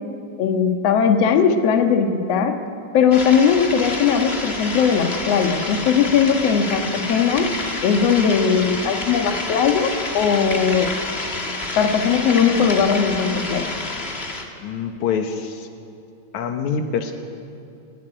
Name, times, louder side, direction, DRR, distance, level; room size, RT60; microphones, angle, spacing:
voice 1, 0.4-2.6 2.9-7.5 7.8-10.9 11.8-13.6, left 6 dB, 60° left, 5 dB, 2.4 m, -19 dB
sound 1, 3.1-14.5, left 2 dB, 25° left, 1.9 m, -29 dB
voice 2, 14.6-15.7 16.3-17.1, left 6 dB, 80° left, 5 dB, 2.6 m, -25 dB
29.5 x 12.5 x 9.9 m, 2.7 s
omnidirectional pair, 3.3 m